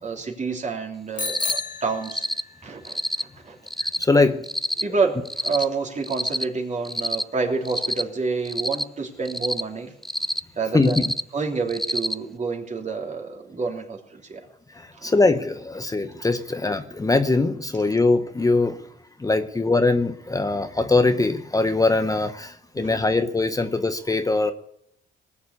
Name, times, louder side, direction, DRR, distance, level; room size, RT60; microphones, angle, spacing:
voice 1, 0.0-2.3 2.6-3.6 4.2-4.4 4.8-9.9 10.5-14.5 14.9-15.1 22.7-23.0, right 4 dB, 35° right, 1 dB, 3.4 m, -28 dB
Bicycle bell, 1.2-2.7, left 4 dB, 40° left, 2.3 m, -32 dB
Cricket, 1.2-1.6 2.0-2.4 2.8-3.2 3.7-4.0 4.4-4.8 5.3-5.6 6.0-6.4 6.8-7.2 7.6-8.0 8.4-8.8 9.3-9.6 10.0-10.4 10.8-11.2 11.7-12.1, equal, ahead, 0.5 m, -27 dB
voice 2, 3.8-4.5 10.7-11.0 14.7-18.9 19.2-24.5, left 3 dB, 15° left, 8 dB, 0.9 m, -22 dB
19.0 x 7.1 x 8.4 m, 0.76 s
cardioid pair, 90°, 20 cm